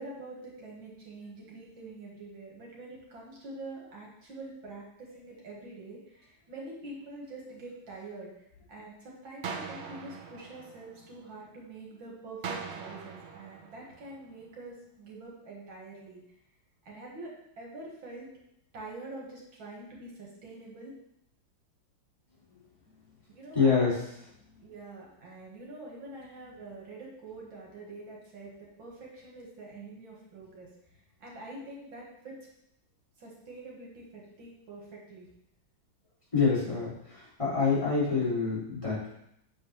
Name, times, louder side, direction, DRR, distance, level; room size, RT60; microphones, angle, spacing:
voice 1, 0.0-16.2 16.8-18.3 18.7-20.9 23.3-24.0 24.6-28.5 28.8-30.7 31.2-32.4 33.2-35.3, right 2 dB, 80° right, -3 dB, 2.4 m, -45 dB
sound 1, 9.4-11.5 12.4-14.5, right 5 dB, 60° right, 0.7 m, -42 dB
voice 2, 23.5-24.0 36.3-39.1, left 5 dB, 15° left, -10 dB, 2.8 m, -26 dB
7.6 x 6.5 x 3.2 m, 0.77 s
omnidirectional pair, 2.1 m